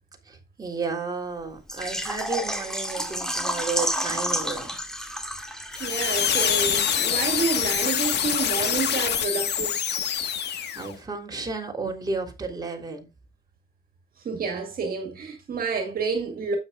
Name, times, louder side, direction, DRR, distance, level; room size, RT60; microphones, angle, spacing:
voice 1, 0.3-4.7 10.7-13.1, right 4 dB, 20° right, 3.6 m, -32 dB
Water / Liquid, 1.7-7.3 7.6-7.7 8.1-8.2, equal, 5° left, 2.1 m, -31 dB
sound 1, 5.7-10.9, left 8 dB, 80° left, 1.6 m, -25 dB
voice 2, 5.8-9.8 14.2-16.6, right 5 dB, 60° right, 2.3 m, -29 dB
12.0 x 8.5 x 2.4 m
cardioid pair, 130°, 17 cm